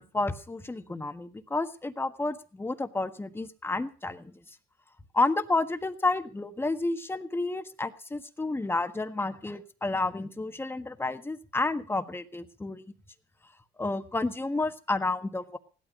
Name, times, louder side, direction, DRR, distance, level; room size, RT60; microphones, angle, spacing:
voice 1, 0.0-4.3 5.1-12.8 13.8-15.6, left 2 dB, 15° left, 8 dB, 1.5 m, -30 dB
16.5 x 12.0 x 5.4 m, 0.38 s
cardioid pair, 110°, 17 cm